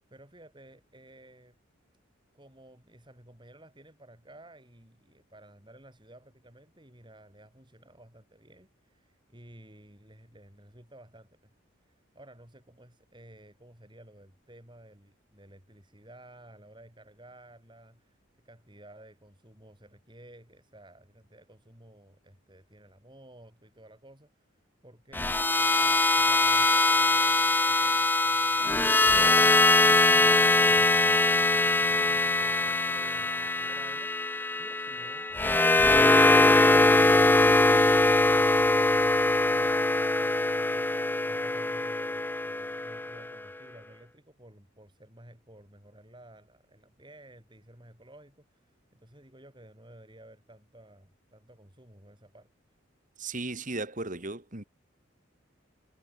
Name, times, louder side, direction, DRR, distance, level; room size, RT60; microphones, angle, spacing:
voice 1, 0.1-1.6 2.3-11.5 11.8-18.2 18.4-29.8 31.9-36.8 37.1-52.5, right 1 dB, 25° right, 7.5 m, -54 dB
sound 1, 25.1-43.3, left 2 dB, 10° left, 0.5 m, -22 dB
voice 2, 53.2-54.6, right 2 dB, 40° right, 2.6 m, -35 dB
head